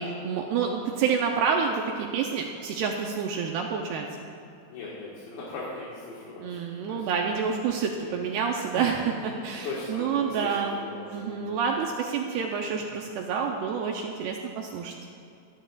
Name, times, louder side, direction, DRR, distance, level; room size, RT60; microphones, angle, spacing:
voice 1, 0.0-4.1 6.4-10.8 11.1-14.9, right 6 dB, 85° right, 1 dB, 2.4 m, -28 dB
voice 2, 4.7-7.0 8.0-8.2 8.7-8.9 9.6-11.4, left 3 dB, 60° left, -7 dB, 3.3 m, -38 dB
25.5 x 11.0 x 2.5 m, 2.6 s
omnidirectional pair, 5.3 m